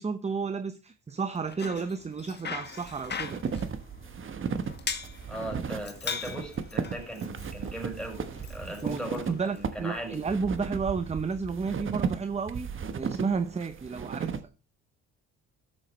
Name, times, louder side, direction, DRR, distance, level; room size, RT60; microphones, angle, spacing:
voice 1, 0.0-3.4 8.7-12.7 12.9-14.3, right 5 dB, 20° right, 0.8 m, -32 dB
Bicycle, 1.3-9.7, left 6 dB, 35° left, 1.4 m, -41 dB
sound 1, 2.9-14.4, right 6 dB, 40° right, 1.2 m, -35 dB
voice 2, 5.3-10.2, right 1 dB, ahead, 5.7 m, -38 dB
13.0 x 7.4 x 3.2 m
cardioid pair, 85°, 31 cm